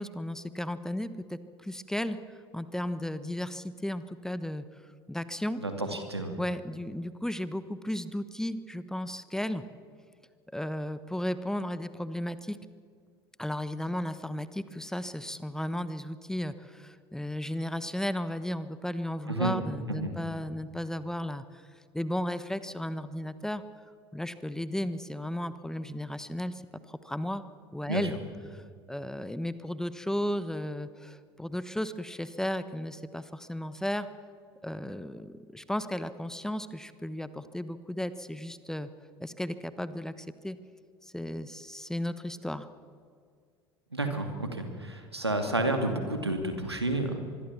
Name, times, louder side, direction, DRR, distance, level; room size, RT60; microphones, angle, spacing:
voice 1, 0.0-5.6 6.4-9.6 10.5-12.6 13.4-21.6 21.9-23.6 24.1-26.6 26.9-27.4 27.7-28.2 28.5-34.1 34.6-38.9 39.2-40.6 41.0-42.7, left 1 dB, 5° left, 13 dB, 1.2 m, -34 dB
voice 2, 5.6-6.3 19.3-19.5 19.9-20.1 27.9-28.1 43.9-47.2, right 2 dB, 90° right, 5 dB, 2.6 m, -30 dB
25.0 x 21.5 x 7.2 m, 2.1 s
figure-of-eight pair, 70°, 13 cm